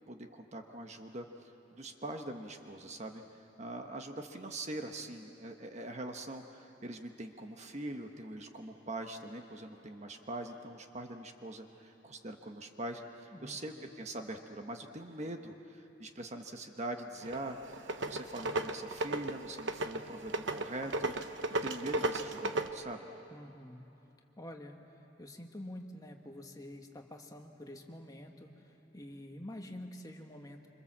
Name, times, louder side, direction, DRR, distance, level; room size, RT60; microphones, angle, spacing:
voice 1, 0.1-1.3 1.7-3.2 3.6-17.6 18.1-21.3 21.6-23.1, right 1 dB, 35° right, 5 dB, 1.2 m, -43 dB
voice 2, 13.3-14.0 23.3-23.9 24.4-24.8 25.2-30.7, left 1 dB, 20° left, 3 dB, 1.6 m, -48 dB
sound 1, 17.2-22.7, right 2 dB, 70° right, 1.0 m, -35 dB
26.5 x 26.0 x 7.5 m, 2.9 s
head